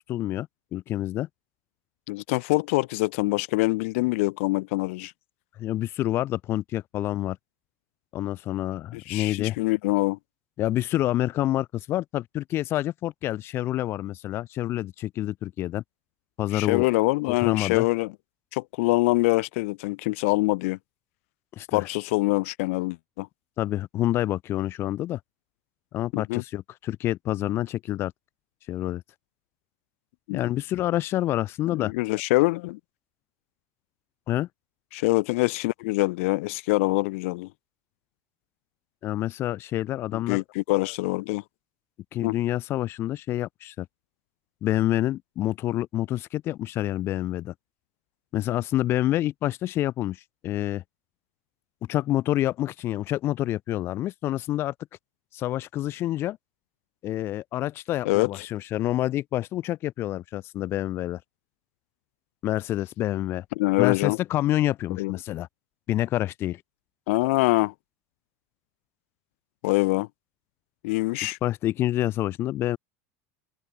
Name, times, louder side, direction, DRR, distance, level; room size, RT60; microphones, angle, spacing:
voice 1, 0.1-1.3 5.6-7.4 8.1-9.6 10.6-15.8 16.4-16.9 17.3-17.9 21.6-21.9 23.6-25.2 25.9-28.1 28.7-29.0 30.3-31.9 34.3-34.5 39.0-40.4 42.1-43.9 44.6-47.5 48.3-50.8 51.9-54.7 55.3-56.4 57.0-61.2 62.4-63.4 63.8-65.5 65.9-66.6 71.4-72.8, left 14 dB, 30° left, 1.3 m, -27 dB
voice 2, 2.1-5.1 8.9-10.2 16.5-18.1 18.5-20.8 21.7-23.3 26.1-26.4 30.3-30.4 31.8-32.8 34.9-37.5 40.1-41.4 42.2-42.3 58.0-58.3 63.6-64.2 65.0-65.2 67.1-67.7 69.6-70.1 70.8-71.4, left 23 dB, 70° left, 0.5 m, -24 dB
cardioid pair, 170°, 8 cm